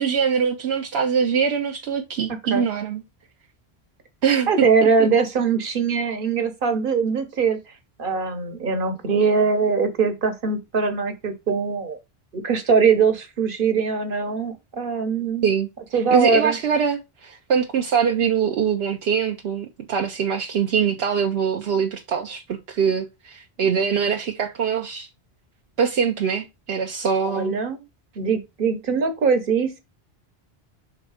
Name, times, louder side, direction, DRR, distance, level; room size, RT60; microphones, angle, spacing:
voice 1, 0.0-3.0 4.2-4.5 15.4-25.1 25.8-27.6, right 7 dB, 80° right, 0.9 m, -23 dB
voice 2, 4.5-7.6 8.0-12.0 12.3-15.5 15.9-16.6 27.2-27.8 28.2-29.8, right 5 dB, 55° right, 1.3 m, -22 dB
5.7 x 3.7 x 4.8 m
omnidirectional pair, 1.1 m